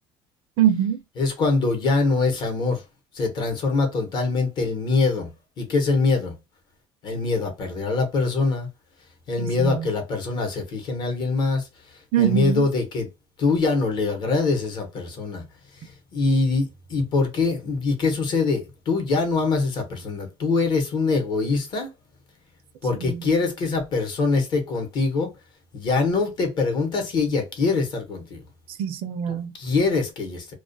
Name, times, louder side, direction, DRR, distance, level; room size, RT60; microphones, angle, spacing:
voice 1, 0.6-1.0 9.4-9.9 12.1-12.7 23.0-23.2 28.8-29.5, right 10 dB, 60° right, 0.4 m, -23 dB
voice 2, 1.2-2.8 3.1-5.3 5.6-6.3 7.0-8.7 9.3-13.1 13.4-15.4 15.8-21.9 22.8-25.3 25.7-28.4 29.5-30.5, left 3 dB, 45° left, 0.9 m, -23 dB
2.3 x 2.1 x 2.5 m
cardioid pair, 140°, 11 cm